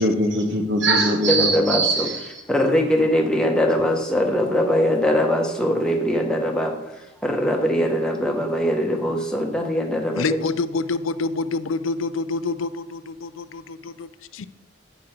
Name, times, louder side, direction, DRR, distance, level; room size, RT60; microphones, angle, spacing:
voice 1, 0.0-2.3, right 2 dB, 65° right, 4 dB, 1.2 m, -21 dB
voice 2, 1.3-2.1 2.5-7.0 7.2-10.5, equal, 5° left, 1 dB, 0.9 m, -21 dB
voice 3, 10.1-14.5, left 3 dB, 90° left, 14 dB, 0.4 m, -27 dB
8.8 x 6.1 x 4.5 m, 0.91 s
head